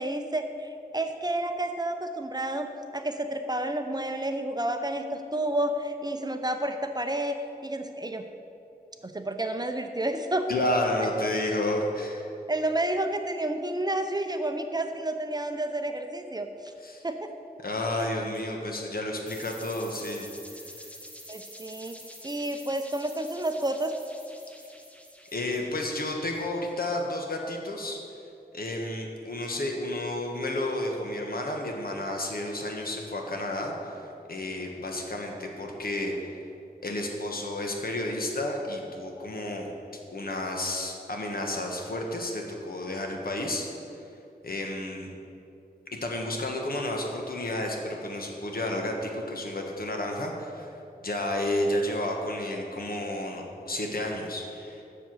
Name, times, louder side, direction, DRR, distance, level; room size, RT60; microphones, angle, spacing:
voice 1, 0.0-2.7 2.9-7.4 7.6-8.3 9.0-10.5 12.5-16.7 17.0-17.3 21.3-22.0 22.2-23.9, right 1 dB, 25° right, 6 dB, 0.6 m, -30 dB
voice 2, 10.5-12.3 16.8-17.0 17.6-20.3 25.3-28.0 28.5-36.4 36.8-39.7 40.1-43.7 44.4-45.1 46.0-50.7 51.0-54.8, left 1 dB, 65° left, 1 dB, 1.4 m, -31 dB
sound 1, 19.3-27.0, equal, 10° left, 1.0 m, -48 dB
7.5 x 6.7 x 7.8 m, 2.7 s
wide cardioid pair, 95°, 16 cm